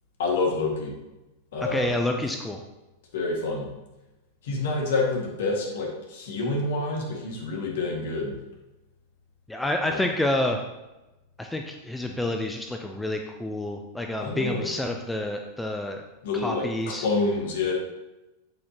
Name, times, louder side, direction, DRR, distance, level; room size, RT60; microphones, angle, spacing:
voice 1, 0.2-0.9 1.5-1.9 3.1-3.7 4.4-8.3 9.8-10.1 14.2-14.7 16.2-17.7, left 3 dB, 55° left, 0 dB, 2.1 m, -28 dB
voice 2, 1.6-2.6 9.5-10.6 11.4-16.0 16.3-17.1, left 1 dB, 5° left, 3 dB, 0.6 m, -28 dB
8.6 x 7.8 x 3.0 m, 1.0 s
figure-of-eight pair, 90°, 0 cm